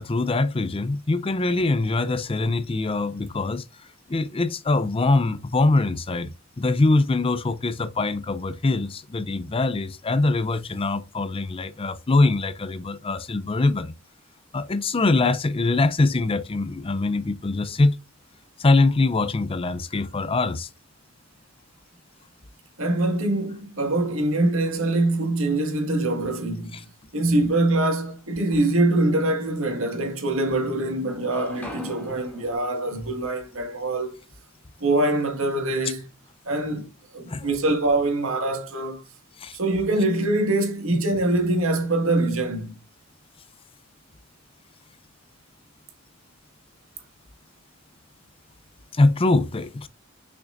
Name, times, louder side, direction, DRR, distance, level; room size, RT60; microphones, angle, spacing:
voice 1, 0.0-13.9 14.5-18.0 18.6-20.7 26.7-26.8 37.3-37.5 39.4-39.6 48.9-49.9, left 2 dB, 25° left, 0.5 m, -23 dB
voice 2, 22.8-26.8 27.1-34.1 34.8-36.0 36.5-36.9 37.1-39.0 39.5-42.8, right 2 dB, 85° right, 1.8 m, -24 dB
sound 1, 28.2-29.0 29.6-30.6 30.9-34.8, equal, 10° left, 2.4 m, -46 dB
6.5 x 5.9 x 2.5 m
head